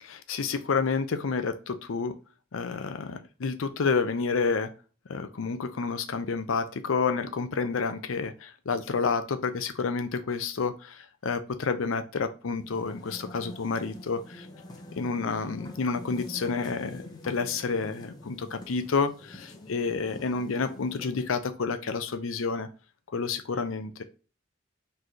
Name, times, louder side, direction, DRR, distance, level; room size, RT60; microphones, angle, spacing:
voice 1, 0.0-2.1 2.5-4.7 5.1-14.5 15.0-22.7 23.1-24.0, left 4 dB, 80° left, 11 dB, 0.5 m, -29 dB
sound 1, 12.5-21.5, left 1 dB, 20° left, 0.7 m, -46 dB
4.1 x 3.3 x 2.8 m, 0.35 s
head